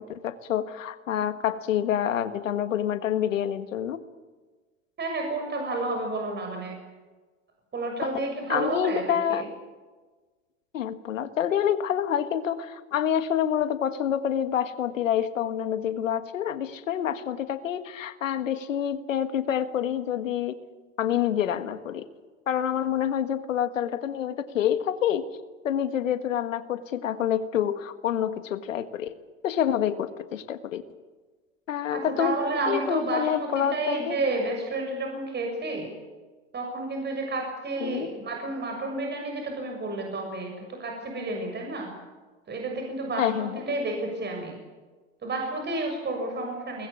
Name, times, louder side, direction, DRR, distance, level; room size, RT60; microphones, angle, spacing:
voice 1, 0.0-4.0 8.0-8.1 8.5-9.5 10.7-20.5 21.0-22.1 22.5-25.3 25.6-29.1 29.4-30.8 31.7-32.4 32.7-34.2 37.8-38.1 43.2-43.5, left 9 dB, 85° left, 10 dB, 1.7 m, -27 dB
voice 2, 5.0-6.8 7.7-9.4 31.9-35.9 36.5-41.9 42.5-44.6 45.2-46.9, right 2 dB, 25° right, 2 dB, 6.9 m, -31 dB
22.5 x 20.0 x 8.8 m, 1.3 s
hypercardioid pair, 95°, 38 cm